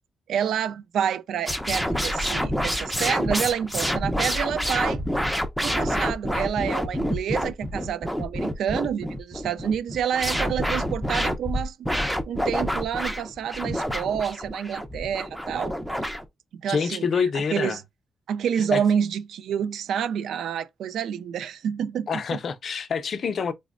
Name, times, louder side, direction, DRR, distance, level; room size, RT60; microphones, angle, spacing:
voice 1, 0.3-5.0 5.6-11.8 12.3-15.7 16.5-17.2 17.5-17.8 18.3-22.4, right 8 dB, 85° right, 0.3 m, -28 dB
sound 1, 1.5-16.2, equal, ahead, 0.5 m, -27 dB
voice 2, 16.7-17.8 18.7-18.8 22.1-23.5, left 6 dB, 55° left, 0.4 m, -26 dB
4.1 x 2.0 x 2.4 m
cardioid pair, 105°, 0 cm